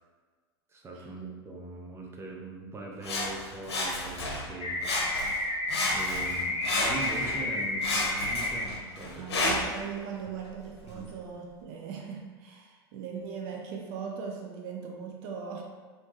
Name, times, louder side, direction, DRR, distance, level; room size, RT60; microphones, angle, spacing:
voice 1, 0.7-4.8 5.9-6.6 6.9-9.3 10.9-11.1, right 2 dB, 20° right, -1 dB, 0.7 m, -41 dB
Sawing, 3.0-4.5 4.8-5.4 5.7-7.4 7.8-9.8 10.5-10.6, left 2 dB, 80° left, 0.8 m, -31 dB
sound 1, 4.6-8.6, left 2 dB, 50° left, 0.9 m, -31 dB
voice 2, 9.0-15.6, right 6 dB, 60° right, 1 dB, 0.5 m, -39 dB
3.4 x 2.8 x 3.1 m, 1.4 s
hypercardioid pair, 90°, 14 cm